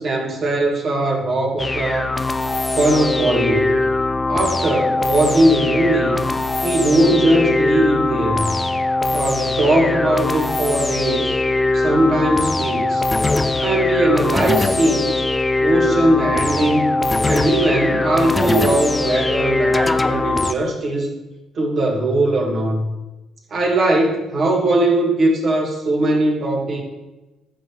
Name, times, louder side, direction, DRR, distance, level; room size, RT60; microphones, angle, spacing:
voice 1, 0.0-2.1 2.7-3.7 4.3-6.2 6.6-8.5 9.1-11.3 11.7-13.1 13.6-15.2 15.6-16.9 17.3-21.1 21.5-22.9 23.5-26.8, right 1 dB, 45° right, 0 dB, 2.2 m, -19 dB
sound 1, 1.6-20.5, left 2 dB, 20° left, 0.6 m, -21 dB
15.0 x 6.4 x 3.3 m, 1.1 s
figure-of-eight pair, 50°, 0 cm